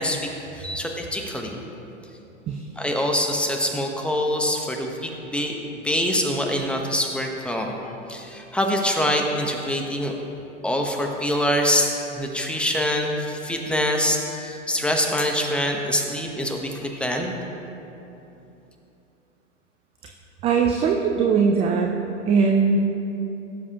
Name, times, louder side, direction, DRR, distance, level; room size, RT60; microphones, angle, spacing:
voice 1, 0.0-1.6 2.8-7.7 8.1-10.2 10.6-17.3, left 1 dB, 5° left, 1 dB, 0.9 m, -25 dB
voice 2, 20.4-21.9 22.3-22.8, right 5 dB, 15° right, 3 dB, 0.3 m, -20 dB
17.0 x 7.3 x 2.9 m, 3.0 s
hypercardioid pair, 115°, 38 cm